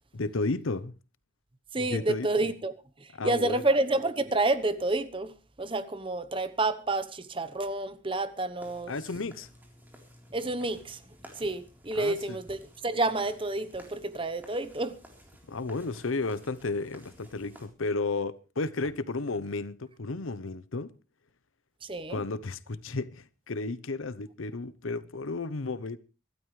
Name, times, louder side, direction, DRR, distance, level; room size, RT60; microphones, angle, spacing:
voice 1, 0.1-0.9 1.8-2.3 3.1-3.6 8.9-9.5 11.9-12.4 15.5-20.9 22.1-26.0, left 3 dB, 90° left, 0.8 m, -33 dB
voice 2, 1.7-2.7 3.0-8.9 10.3-11.0 11.4-15.0 21.8-22.2, right 2 dB, 25° right, 1.0 m, -29 dB
sound 1, 8.6-17.7, equal, 10° right, 3.7 m, -54 dB
24.0 x 12.5 x 3.3 m
head